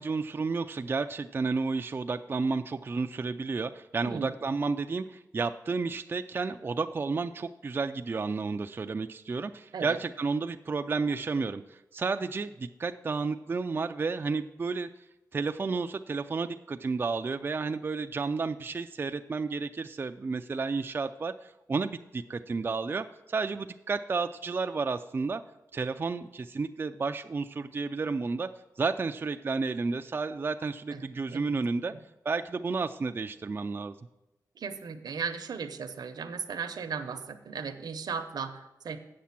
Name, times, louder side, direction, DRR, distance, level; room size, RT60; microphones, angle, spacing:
voice 1, 0.0-14.9 15.3-25.4 25.7-28.5 28.8-31.9 32.3-34.0, right 4 dB, 30° right, 7 dB, 0.3 m, -31 dB
voice 2, 30.9-32.0 34.6-39.0, right 6 dB, 75° right, 8 dB, 0.8 m, -37 dB
8.4 x 6.7 x 5.8 m, 0.97 s
wide cardioid pair, 100°, 7 cm